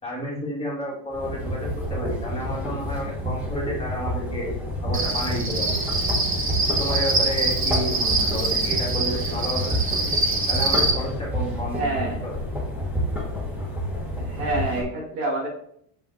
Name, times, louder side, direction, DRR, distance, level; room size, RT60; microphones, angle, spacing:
voice 1, 0.0-4.5 4.8-5.8 6.7-9.8 10.5-12.3, equal, 15° left, -5 dB, 2.5 m, -31 dB
sound 1, 1.1-14.8, equal, 5° right, 1.6 m, -29 dB
Cricket, 4.9-10.9, right 3 dB, 25° right, 1.2 m, -24 dB
voice 2, 11.7-12.2 14.2-15.5, right 2 dB, 75° right, -3 dB, 2.5 m, -27 dB
6.2 x 5.6 x 2.9 m, 0.67 s
supercardioid pair, 130°, 46 cm